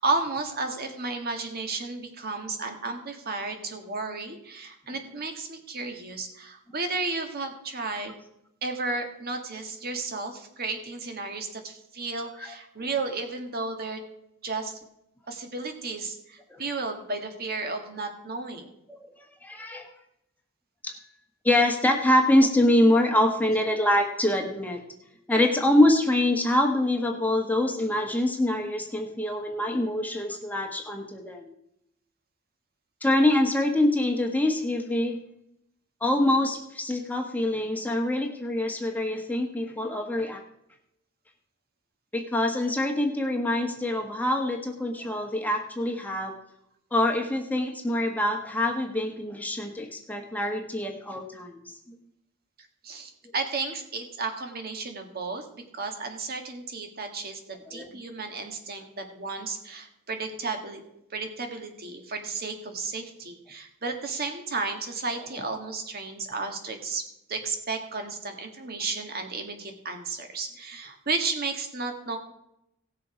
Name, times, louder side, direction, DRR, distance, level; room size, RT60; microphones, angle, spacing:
voice 1, 0.0-8.2 8.6-14.0 14.4-14.8 15.3-18.7 52.8-60.8 61.1-72.2, right 3 dB, 50° right, 5 dB, 1.7 m, -33 dB
voice 2, 18.9-19.9 20.8-20.9 21.4-24.8 25.3-31.5 33.0-35.2 36.0-40.4 42.1-46.3 46.9-52.0 57.7-57.9, left 1 dB, 10° left, 2 dB, 1.2 m, -25 dB
17.5 x 6.7 x 5.0 m, 0.80 s
head